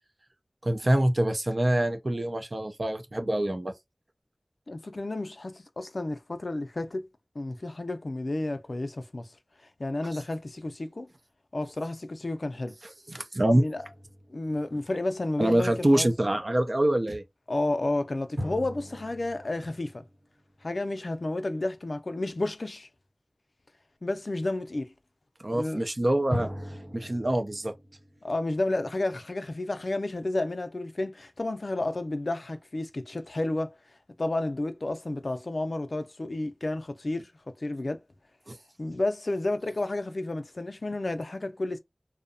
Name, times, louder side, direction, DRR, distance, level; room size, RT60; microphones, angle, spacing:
voice 1, 0.6-3.7 13.1-13.7 15.4-17.2 25.4-26.5 26.9-27.7 38.5-38.6, right 1 dB, 50° right, 0.5 m, -25 dB
voice 2, 4.7-7.1 7.4-9.3 9.8-11.1 11.5-12.8 13.5-13.8 14.3-16.1 17.5-20.0 20.6-22.9 24.0-24.9 25.5-25.8 28.2-33.8 34.2-38.0 38.8-41.8, left 2 dB, 70° left, 0.4 m, -31 dB
sound 1, 13.7-15.4 18.4-21.1 26.3-29.3, equal, 70° right, 1.0 m, -40 dB
2.7 x 2.0 x 2.5 m
wide cardioid pair, 50°, 0 cm